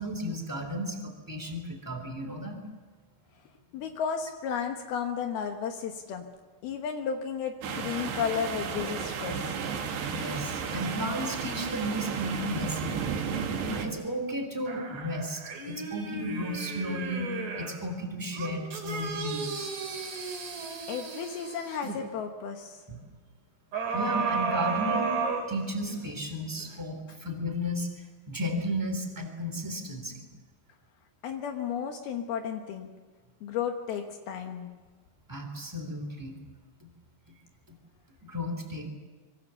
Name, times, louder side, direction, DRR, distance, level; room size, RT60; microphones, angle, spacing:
voice 1, 0.0-2.6 10.1-13.0 13.6-17.2 17.6-19.7 22.9-23.0 23.9-25.1 25.5-30.2 35.3-36.3 38.2-38.9, equal, 5° right, 4 dB, 2.7 m, -34 dB
voice 2, 3.7-6.3 6.6-9.4 20.9-22.8 31.2-32.9 33.4-34.7, left 7 dB, 75° left, 4 dB, 3.1 m, -33 dB
sound 1, 7.6-13.9, right 6 dB, 80° right, 4.0 m, -33 dB
sound 2, 14.7-17.8 18.3-22.0 23.7-26.1 26.6-26.7, right 4 dB, 50° right, 4.3 m, -33 dB
25.5 x 23.0 x 7.0 m, 1.4 s
omnidirectional pair, 4.7 m